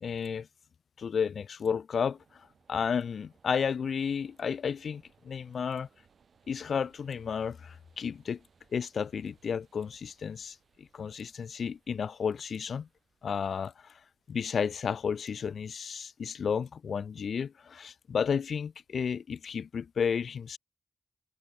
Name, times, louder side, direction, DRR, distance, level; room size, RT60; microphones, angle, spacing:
voice 1, 0.0-0.5 1.0-5.9 6.5-8.4 8.7-12.9 13.2-14.0 14.3-20.6, left 6 dB, 90° left, 0.4 m, -32 dB
sound 1, 1.9-19.5, right 6 dB, 80° right, 7.7 m, -69 dB
cardioid pair, 65°, 0 cm